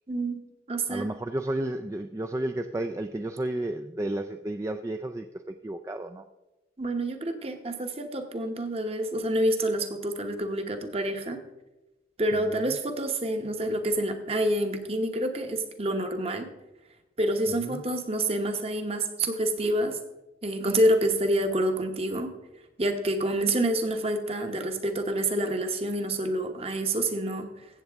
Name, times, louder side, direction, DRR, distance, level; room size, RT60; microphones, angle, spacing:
voice 1, 0.1-0.4 0.7-1.1 6.8-11.4 12.2-16.5 17.2-20.0 20.4-22.3 22.8-27.5, right 1 dB, 35° right, 6 dB, 1.0 m, -27 dB
voice 2, 0.9-6.2 12.5-12.7 17.5-17.8, right 1 dB, 15° right, 6 dB, 0.3 m, -32 dB
15.0 x 7.8 x 3.5 m, 1.0 s
head